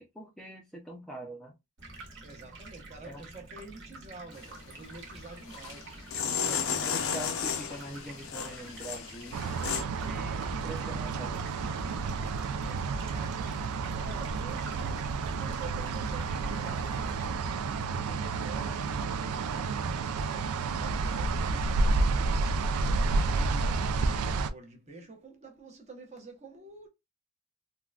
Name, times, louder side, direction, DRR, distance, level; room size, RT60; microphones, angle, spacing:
voice 1, 0.0-1.5 3.0-3.2 6.5-11.4 23.3-23.8, right 1 dB, ahead, 0.4 m, -44 dB
Stream, 1.8-17.3, right 2 dB, 55° right, 1.1 m, -48 dB
voice 2, 2.2-6.5 12.6-15.1 15.4-26.9, right 3 dB, 30° right, 0.8 m, -49 dB
sound 1, 4.3-4.7 5.5-9.8, left 7 dB, 65° left, 0.5 m, -33 dB
sound 2, 9.3-24.5, right 3 dB, 85° right, 0.4 m, -30 dB
3.6 x 2.2 x 2.3 m
head